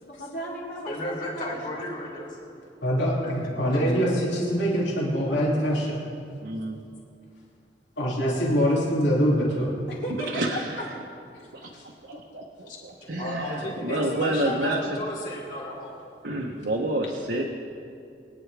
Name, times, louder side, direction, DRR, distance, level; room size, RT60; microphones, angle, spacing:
voice 1, 0.0-1.8 9.9-10.3 10.8-10.9, right 1 dB, 70° left, -4 dB, 3.3 m, -36 dB
voice 2, 0.9-2.4 3.2-3.3 12.7-12.8 13.2-16.0, left 1 dB, 45° left, -5 dB, 3.6 m, -34 dB
voice 3, 2.8-6.0 8.0-9.7, equal, 90° left, -4 dB, 2.6 m, -24 dB
voice 4, 6.4-6.8 10.2-10.9 11.5-11.7 12.3-15.0 16.2-17.4, right 1 dB, 70° right, -1 dB, 1.0 m, -29 dB
23.0 x 10.0 x 3.4 m, 2.5 s
head